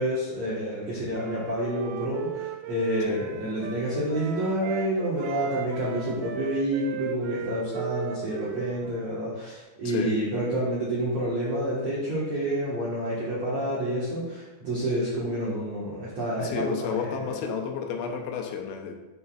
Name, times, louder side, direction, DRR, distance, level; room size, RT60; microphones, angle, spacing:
voice 1, 0.0-17.6, right 1 dB, 65° right, -8 dB, 1.7 m, -29 dB
Wind instrument woodwind instrument, 1.1-4.9 5.2-9.3, right 8 dB, 85° right, 2.9 m, -37 dB
voice 2, 9.9-10.2 16.4-19.0, left 6 dB, 80° left, 3 dB, 3.0 m, -31 dB
9.7 x 6.7 x 2.4 m, 1.1 s
omnidirectional pair, 5.1 m